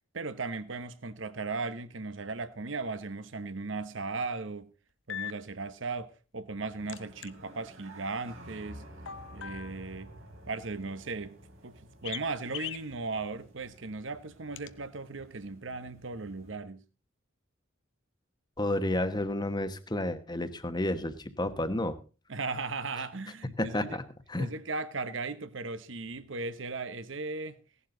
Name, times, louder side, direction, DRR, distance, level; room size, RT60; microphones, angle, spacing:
voice 1, 0.1-4.7 5.1-8.9 9.3-10.1 10.5-11.4 11.6-16.8 22.3-24.0 24.4-27.6, right 3 dB, 65° right, 1.0 m, -37 dB
sound 1, 3.0-3.1 5.1-5.3 6.9-7.3 9.1-9.9 12.0-12.2 12.5-12.9 14.6-14.7, left 11 dB, 65° left, 0.7 m, -39 dB
sound 2, 6.8-16.5, right 1 dB, 80° right, 4.2 m, -52 dB
voice 2, 18.6-22.0 23.6-24.0 24.3-24.5, left 1 dB, 20° left, 1.2 m, -31 dB
17.0 x 11.5 x 3.9 m
head